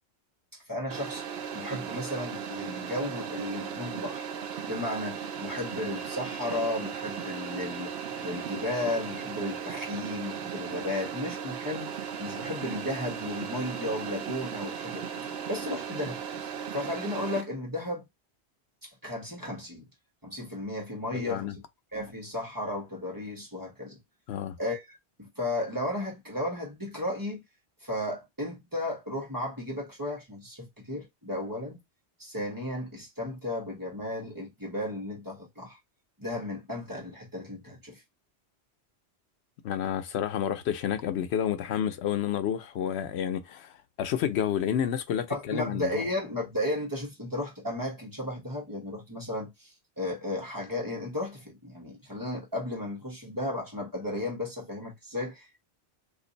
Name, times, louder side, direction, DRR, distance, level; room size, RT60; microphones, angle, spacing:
voice 1, 0.7-1.2 1.5-4.3 4.7-7.9 8.2-15.1 15.5-18.0 18.8-19.9 20.2-21.6 21.9-24.0 24.6-27.4 27.8-31.8 32.2-35.8 36.2-38.0 45.3-55.6, left 1 dB, 20° right, 1.0 m, -34 dB
sound 1, 0.9-17.4, right 7 dB, 75° right, 0.8 m, -37 dB
voice 2, 21.1-21.5 24.3-24.6 39.6-46.0, left 9 dB, 80° left, 0.8 m, -30 dB
2.6 x 2.5 x 3.8 m
omnidirectional pair, 1.1 m